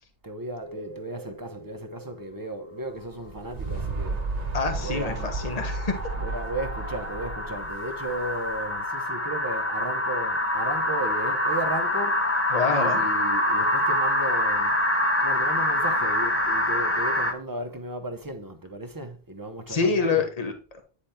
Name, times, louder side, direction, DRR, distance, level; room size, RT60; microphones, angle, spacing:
voice 1, 0.2-4.2 4.7-5.3 6.1-12.4 12.7-14.8 15.2-20.2, right 1 dB, 20° right, 0.9 m, -35 dB
sound 1, 0.6-2.2 2.6-3.3 4.9-17.3, left 1 dB, 15° left, 0.8 m, -26 dB
sound 2, 3.1-8.7, right 3 dB, 45° right, 1.0 m, -33 dB
voice 2, 4.5-5.9 12.5-13.1 19.7-20.8, left 4 dB, 40° left, 1.2 m, -26 dB
9.8 x 3.4 x 4.3 m
omnidirectional pair, 1.0 m